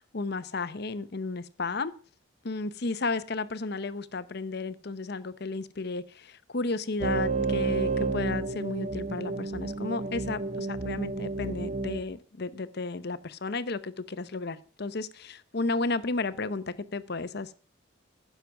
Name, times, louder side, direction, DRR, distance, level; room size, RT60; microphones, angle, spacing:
voice 1, 0.0-1.9 2.4-17.5, left 3 dB, 50° left, 0.8 m, -33 dB
sound 1, 7.0-12.0, right 3 dB, 35° right, 0.8 m, -30 dB
15.0 x 6.8 x 5.9 m
head